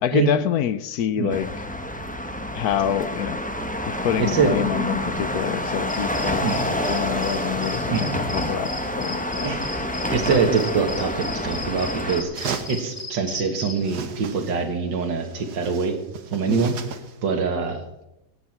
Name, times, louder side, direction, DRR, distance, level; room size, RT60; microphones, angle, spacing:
voice 1, 0.0-1.5 2.5-3.4 3.9-9.6 16.5-16.7, left 10 dB, 65° left, 15 dB, 1.0 m, -26 dB
sound 1, 1.3-12.2, left 1 dB, 5° left, 0.7 m, -28 dB
sound 2, 5.9-13.9, left 2 dB, 30° left, 1.7 m, -36 dB
voice 2, 6.4-6.7 7.9-8.2 9.4-9.6 10.1-15.9 16.3-16.8 17.2-17.8, right 5 dB, 85° right, 5 dB, 2.3 m, -24 dB
sound 3, 12.3-13.1 13.8-14.7 15.0-17.2, right 6 dB, 65° right, 1.6 m, -35 dB
16.5 x 9.3 x 6.0 m, 0.90 s
omnidirectional pair, 1.9 m